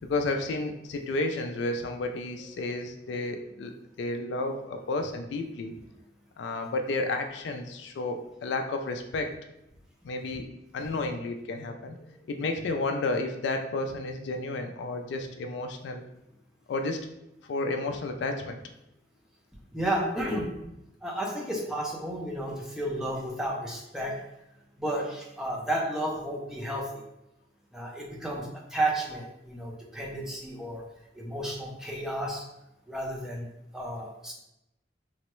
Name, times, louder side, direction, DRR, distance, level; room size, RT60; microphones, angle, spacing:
voice 1, 0.0-5.7 6.4-9.3 10.0-10.5 10.7-11.9 12.3-16.0 16.7-17.0 17.5-18.6, left 2 dB, 70° left, 5 dB, 0.3 m, -31 dB
voice 2, 19.7-20.5 21.0-24.1 24.8-27.0 27.7-30.8 31.2-32.4 32.9-33.5 33.7-34.3, right 1 dB, 5° right, -2 dB, 0.5 m, -32 dB
3.3 x 2.0 x 3.0 m, 0.86 s
head